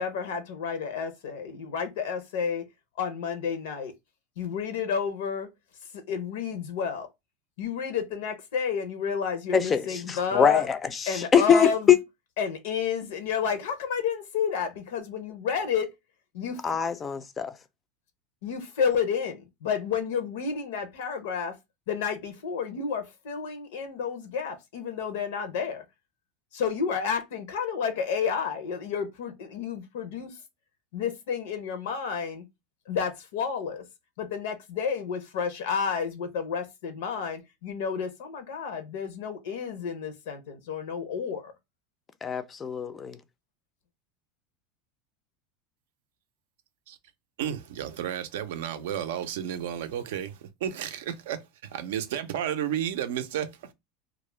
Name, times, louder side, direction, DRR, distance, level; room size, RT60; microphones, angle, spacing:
voice 1, 0.0-2.6 3.0-3.9 4.4-5.5 5.9-7.1 7.6-10.7 11.1-12.0 12.4-15.9 16.3-16.7 18.4-21.6 21.9-25.8 26.5-30.4 30.9-32.4 32.9-33.8 34.2-41.5, left 6 dB, 80° left, 0.6 m, -30 dB
voice 2, 9.5-9.8 10.1-10.8 11.0-12.0 16.6-17.5 42.2-43.2, left 7 dB, 20° left, 0.3 m, -23 dB
voice 3, 47.4-53.7, right 10 dB, 85° right, 0.4 m, -32 dB
2.4 x 2.0 x 3.0 m
supercardioid pair, 135°, 0 cm